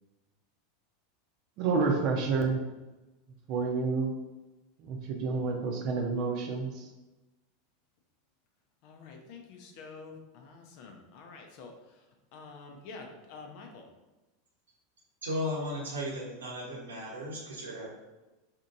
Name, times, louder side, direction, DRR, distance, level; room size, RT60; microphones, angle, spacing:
voice 1, 1.6-2.6 3.5-4.1 4.8-6.9, right 4 dB, 45° right, 2 dB, 0.7 m, -29 dB
voice 2, 8.8-12.0 12.3-13.9, left 4 dB, 55° left, 3 dB, 0.6 m, -48 dB
voice 3, 15.2-17.9, left 1 dB, 75° right, -3 dB, 1.0 m, -35 dB
4.3 x 2.9 x 2.6 m, 1.1 s
figure-of-eight pair, 85°, 0 cm